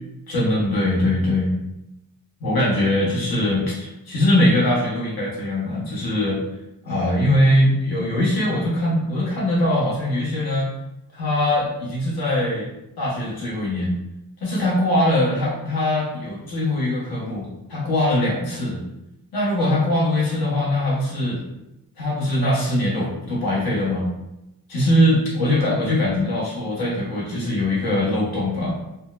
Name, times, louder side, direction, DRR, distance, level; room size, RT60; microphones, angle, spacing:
voice 1, 0.3-1.5 2.4-6.4 6.8-10.7 11.1-12.7 13.0-13.9 14.4-18.8 19.3-21.4 22.0-24.1 24.7-28.8, left 1 dB, 80° left, -6 dB, 1.3 m, -21 dB
3.9 x 2.2 x 2.5 m, 0.91 s
wide cardioid pair, 170°, 36 cm